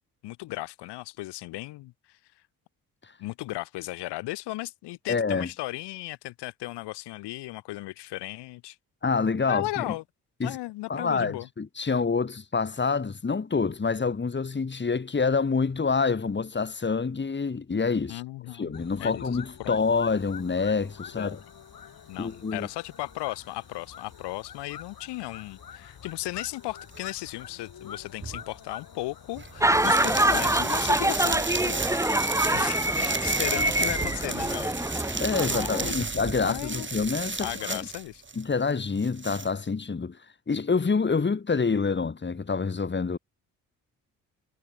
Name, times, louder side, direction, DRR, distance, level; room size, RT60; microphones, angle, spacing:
voice 1, 0.2-2.2 3.2-8.8 9.5-10.0 10.4-11.5 18.1-18.7 19.0-19.2 19.6-19.8 21.1-21.4 22.1-34.8 35.5-36.1 36.4-36.9 37.4-38.2, left 18 dB, 75° left, 1.3 m, -36 dB
voice 2, 5.1-5.5 9.0-9.9 10.4-10.6 10.9-18.2 18.6-21.3 22.2-22.7 35.2-37.9 38.4-40.2 40.5-43.2, left 4 dB, 25° left, 1.8 m, -27 dB
sound 1, 18.7-35.7, left 8 dB, 60° left, 7.1 m, -47 dB
sound 2, 26.9-27.0 28.2-28.4 29.4-38.4 38.7-39.5, right 4 dB, 30° right, 2.5 m, -33 dB
sound 3, 29.6-35.9, right 1 dB, 5° right, 2.1 m, -25 dB
hypercardioid pair, 50°, 41 cm